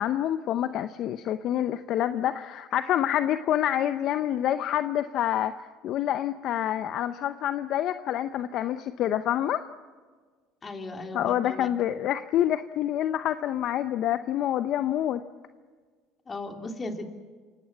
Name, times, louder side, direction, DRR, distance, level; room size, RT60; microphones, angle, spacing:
voice 1, 0.0-9.7 11.1-15.2, left 11 dB, 60° left, 11 dB, 0.7 m, -27 dB
voice 2, 10.6-11.7 16.3-17.1, left 2 dB, 30° left, 4 dB, 3.3 m, -36 dB
28.5 x 17.5 x 7.4 m, 1.5 s
hypercardioid pair, 75°, 0 cm